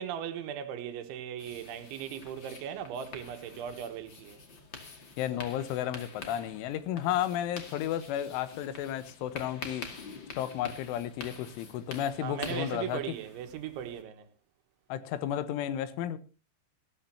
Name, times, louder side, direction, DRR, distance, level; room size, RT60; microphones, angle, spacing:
voice 1, 0.0-4.4 12.2-14.3, right 9 dB, 80° right, 3.6 m, -38 dB
sound 1, 1.4-14.0, left 4 dB, 40° left, 1.7 m, -47 dB
voice 2, 5.2-9.9 10.4-13.2 14.9-16.2, left 11 dB, 90° left, 3.5 m, -33 dB
18.5 x 15.0 x 2.8 m
omnidirectional pair, 5.5 m